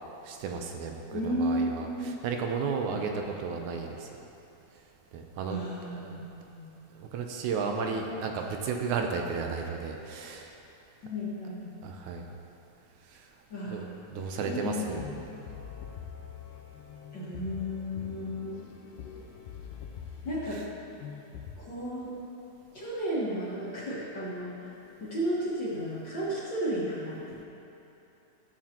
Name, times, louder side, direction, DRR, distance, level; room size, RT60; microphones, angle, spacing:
voice 1, 0.2-0.9 1.2-1.9 2.2-3.1 3.4-4.1 5.1-5.6 5.9-6.2 7.0-10.5 11.8-12.3 13.1-13.2 13.7-13.8 14.1-15.0, right 5 dB, 80° right, 2 dB, 2.0 m, -33 dB
voice 2, 1.1-2.2 2.9-3.0 5.5-6.2 6.5-6.7 11.0-11.7 13.5-14.0 14.3-15.0 17.1-18.6 20.3-20.6 21.6-22.1 22.7-24.7 25.0-27.2, equal, 50° left, -8 dB, 1.6 m, -33 dB
sound 1, 14.7-21.6, left 7 dB, 80° left, 2.2 m, -44 dB
14.5 x 7.3 x 2.9 m, 2.9 s
omnidirectional pair, 3.5 m